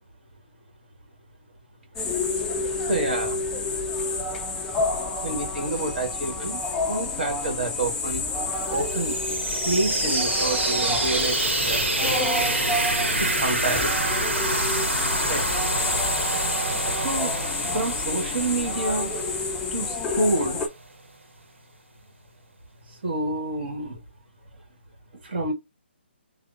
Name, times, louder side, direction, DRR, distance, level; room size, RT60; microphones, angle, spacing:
sound 1, 2.0-20.7, left 3 dB, 5° left, 0.3 m, -29 dB
voice 1, 2.4-3.8 5.2-8.2 8.7-9.2 9.6-12.3 13.2-14.1 15.3-15.5 16.9-17.3 17.7-19.2 19.7-20.6 23.0-24.0 25.2-25.5, right 2 dB, 55° right, 1.3 m, -28 dB
sound 2, 8.5-20.2, right 2 dB, 85° right, 1.0 m, -27 dB
3.4 x 2.0 x 2.5 m
hypercardioid pair, 150°, 6 cm